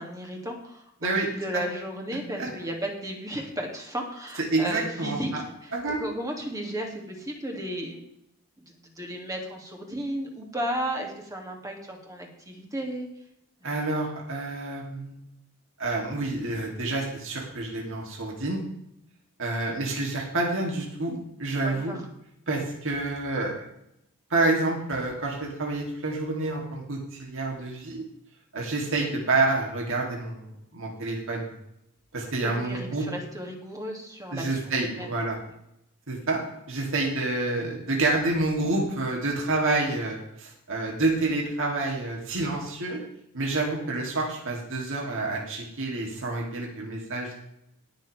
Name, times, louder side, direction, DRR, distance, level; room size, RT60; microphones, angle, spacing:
voice 1, 0.0-5.3 5.6-5.7 6.0-8.0 8.7-13.1 21.6-22.0 32.4-34.6 34.9-35.1, right 1 dB, 15° right, 1 dB, 2.5 m, -34 dB
voice 2, 4.5-5.2 5.7-6.1 13.6-15.2 15.8-18.6 19.4-22.0 22.5-23.5 24.3-28.0 28.5-31.5 32.1-33.0 34.3-35.4 36.1-36.4 36.7-43.0 43.3-47.4, right 2 dB, 60° right, -1 dB, 3.0 m, -28 dB
20.0 x 7.1 x 3.5 m, 0.79 s
head